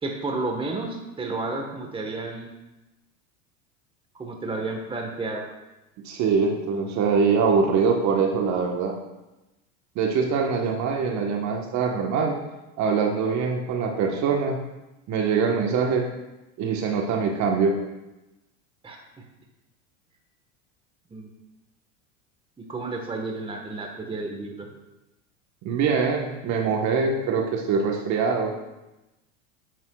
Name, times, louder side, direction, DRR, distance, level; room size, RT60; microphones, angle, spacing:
voice 1, 0.0-2.5 4.1-5.4 18.8-19.2 21.1-21.3 22.6-24.7, right 3 dB, 15° right, 2 dB, 1.3 m, -31 dB
voice 2, 6.0-8.9 9.9-12.4 12.8-14.6 15.1-16.0 16.6-17.8 25.6-28.5, right 5 dB, 45° right, 1 dB, 1.3 m, -23 dB
10.0 x 7.5 x 2.4 m, 0.99 s
hypercardioid pair, 90°, 40 cm